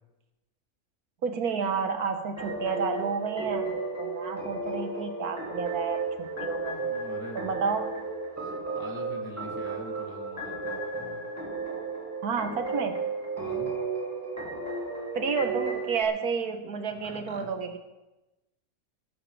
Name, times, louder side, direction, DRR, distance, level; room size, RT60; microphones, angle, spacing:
voice 1, 1.2-6.9 7.3-7.9 12.2-13.0 15.1-17.8, right 5 dB, 80° right, 7 dB, 1.6 m, -30 dB
sound 1, 2.4-16.0, right 3 dB, 10° right, 2.5 m, -34 dB
voice 2, 6.8-7.7 8.3-11.2 13.4-13.8 17.0-17.5, equal, 15° left, -1 dB, 2.3 m, -44 dB
21.0 x 12.0 x 3.3 m, 1.0 s
omnidirectional pair, 1.6 m